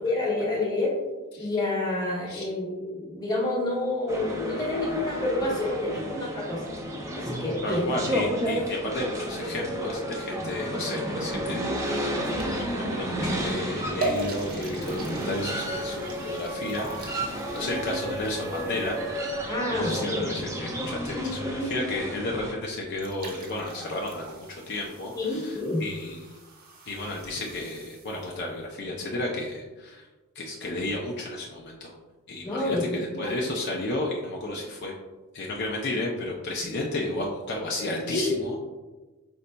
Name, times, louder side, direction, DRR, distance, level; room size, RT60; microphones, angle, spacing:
voice 1, 0.0-0.9 1.4-6.6 7.1-7.9 17.5-17.8 19.5-20.3 21.1-21.9 25.1-25.8 32.4-33.5 38.1-38.4, left 2 dB, 20° left, -4 dB, 1.0 m, -29 dB
sound 1, 4.1-22.5, equal, 15° right, 0.5 m, -32 dB
voice 2, 7.6-19.5 19.8-26.3 26.9-30.1 30.4-31.9 32.3-34.9 35.3-38.6, left 2 dB, 50° left, -1 dB, 0.5 m, -33 dB
sound 2, 12.2-12.9 13.5-13.6 14.0-19.3 22.6-22.7 22.9-28.5, right 2 dB, 45° right, 0.8 m, -39 dB
5.3 x 3.8 x 2.2 m, 1.2 s
head